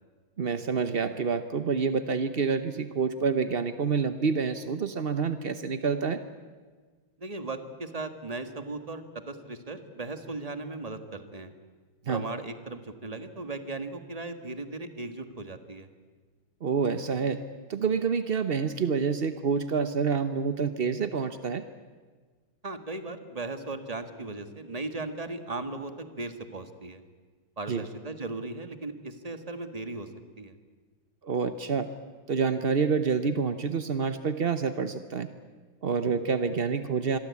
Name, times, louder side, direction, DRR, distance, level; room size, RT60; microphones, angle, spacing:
voice 1, 0.4-6.2 12.1-12.2 16.6-17.4 17.7-21.6 27.7-27.8 31.2-31.9 32.3-35.3 35.8-37.2, right 5 dB, 60° right, 11 dB, 0.5 m, -27 dB
voice 2, 7.2-11.5 12.1-15.9 22.6-27.0 27.6-30.1 30.4-30.5, right 3 dB, 20° right, 8 dB, 1.5 m, -37 dB
26.5 x 22.5 x 8.5 m, 1.4 s
omnidirectional pair, 2.4 m